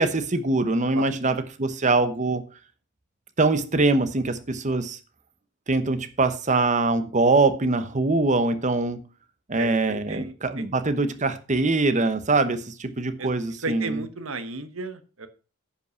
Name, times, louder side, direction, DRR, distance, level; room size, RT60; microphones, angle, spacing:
voice 1, 0.0-2.4 3.4-5.0 5.7-9.0 9.5-14.0, right 3 dB, 35° right, 10 dB, 0.9 m, -23 dB
voice 2, 9.6-10.6 13.2-13.3 13.6-15.3, right 3 dB, 65° right, 11 dB, 1.2 m, -34 dB
10.0 x 5.5 x 5.6 m, 0.36 s
head